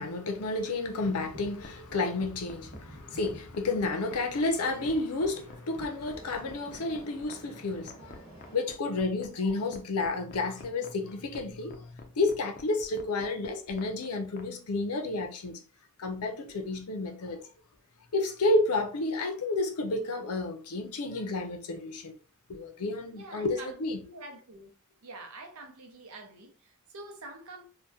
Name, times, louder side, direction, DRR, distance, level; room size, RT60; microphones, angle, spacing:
voice 1, 0.0-8.3 8.5-15.6 16.0-17.5 18.1-22.1 22.5-24.0, left 2 dB, 90° left, 0.6 m, -31 dB
sound 1, 1.0-8.5, right 1 dB, 40° right, 1.0 m, -50 dB
sound 2, 1.6-14.5, left 4 dB, 40° left, 0.4 m, -48 dB
voice 2, 23.2-24.7 25.0-27.7, right 2 dB, 75° right, 0.7 m, -46 dB
2.7 x 2.2 x 2.2 m
head